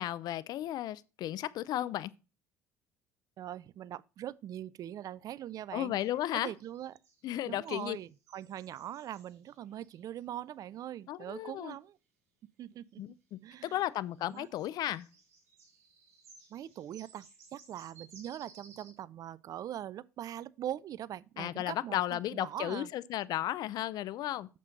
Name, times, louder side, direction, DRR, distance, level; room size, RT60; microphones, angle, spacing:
voice 1, 0.0-2.1 5.7-6.5 7.2-8.0 11.1-11.7 13.0-15.1 21.4-24.5, left 13 dB, 55° left, 0.5 m, -34 dB
voice 2, 3.4-6.0 6.3-6.9 7.5-12.0 12.6-13.0 13.4-13.8 14.3-14.5 16.5-17.3 17.5-22.9, right 11 dB, 45° right, 0.4 m, -42 dB
sound 1, 6.0-10.2 13.7-13.8 14.1-18.9, right 5 dB, 75° right, 2.9 m, -60 dB
8.4 x 6.9 x 3.9 m
hypercardioid pair, 60°, 8 cm